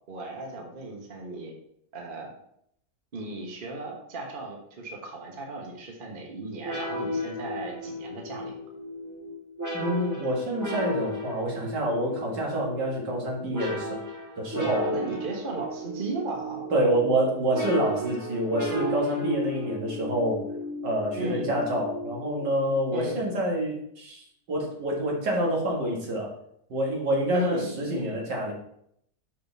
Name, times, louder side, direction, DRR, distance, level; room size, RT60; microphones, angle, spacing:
voice 1, 0.1-1.5 1.9-2.3 3.1-8.5 14.5-16.7 21.1-21.6 22.9-23.3 27.3-28.2, right 2 dB, 35° right, 1 dB, 1.3 m, -36 dB
sound 1, 6.6-22.9, equal, 10° right, 1.0 m, -34 dB
voice 2, 9.7-14.0 14.4-14.8 16.7-20.4 20.8-26.3 26.7-28.5, right 1 dB, 80° right, -2 dB, 2.5 m, -27 dB
6.3 x 5.7 x 4.1 m, 0.71 s
omnidirectional pair, 1.8 m